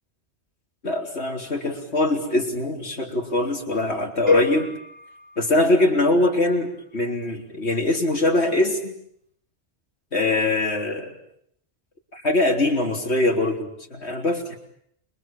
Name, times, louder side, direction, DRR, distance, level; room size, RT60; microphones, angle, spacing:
voice 1, 0.8-4.7 5.4-8.9 10.1-11.1 12.1-14.6, left 2 dB, 70° left, 2 dB, 4.1 m, -23 dB
sound 1, 4.3-6.3, left 3 dB, 55° right, 5.1 m, -26 dB
28.5 x 23.5 x 7.4 m, 0.69 s
omnidirectional pair, 1.2 m